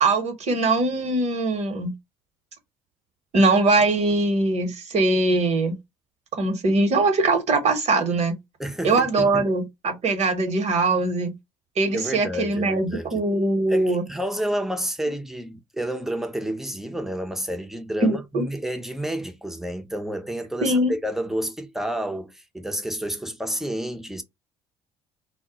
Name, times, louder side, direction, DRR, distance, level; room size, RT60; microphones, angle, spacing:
voice 1, 0.0-1.9 3.3-5.8 6.4-8.4 8.8-11.4 11.8-14.0 18.0-18.4 20.6-20.9, right 2 dB, 50° right, 1.0 m, -21 dB
voice 2, 8.6-9.5 11.9-13.2 13.7-24.2, equal, ahead, 0.7 m, -30 dB
2.1 x 2.1 x 3.8 m
hypercardioid pair, 60°, 15 cm